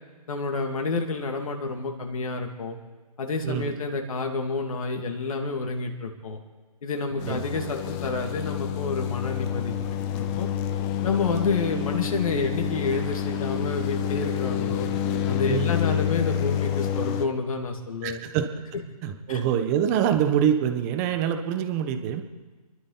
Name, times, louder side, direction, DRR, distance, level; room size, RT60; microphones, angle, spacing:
voice 1, 0.3-2.8 3.2-6.4 6.8-10.5 11.0-14.9 15.3-18.2 19.3-19.4, left 4 dB, 55° left, 3 dB, 2.5 m, -29 dB
sound 1, 7.2-17.3, left 10 dB, 15° left, 0.6 m, -28 dB
voice 2, 18.0-18.4 19.0-22.2, right 9 dB, 25° right, 7 dB, 1.3 m, -25 dB
29.5 x 12.0 x 4.1 m, 1.3 s
hypercardioid pair, 145°, 21 cm